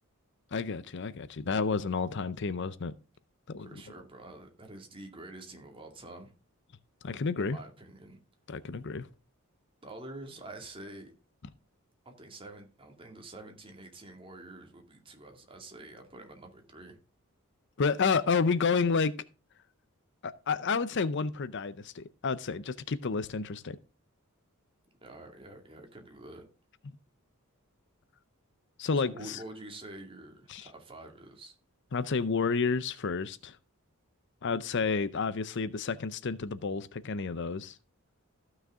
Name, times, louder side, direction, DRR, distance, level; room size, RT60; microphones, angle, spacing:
voice 1, 0.5-2.9 3.5-3.7 7.0-7.6 8.5-9.1 17.8-19.2 20.2-23.8 28.8-29.4 30.5-30.7 31.9-33.6 34.4-37.8, left 5 dB, 55° left, 0.6 m, -30 dB
voice 2, 3.6-6.3 7.4-8.2 9.8-11.1 12.0-17.0 25.0-26.5 29.1-31.5, right 2 dB, 25° right, 2.4 m, -47 dB
14.5 x 6.4 x 3.6 m
head